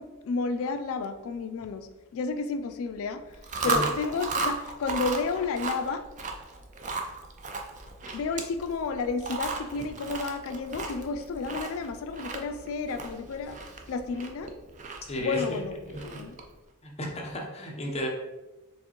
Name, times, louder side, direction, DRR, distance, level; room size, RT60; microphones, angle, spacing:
voice 1, 0.0-6.1 8.1-13.6 13.9-14.5 15.2-15.7 16.0-16.4, left 4 dB, 65° left, 8 dB, 0.3 m, -32 dB
Chewing mastication, 3.3-16.5, right 4 dB, 35° right, 0.5 m, -35 dB
voice 2, 3.6-3.9 15.1-15.6 15.9-16.2 16.8-18.1, equal, 30° left, -1 dB, 0.8 m, -33 dB
4.4 x 3.7 x 2.9 m, 1.1 s
head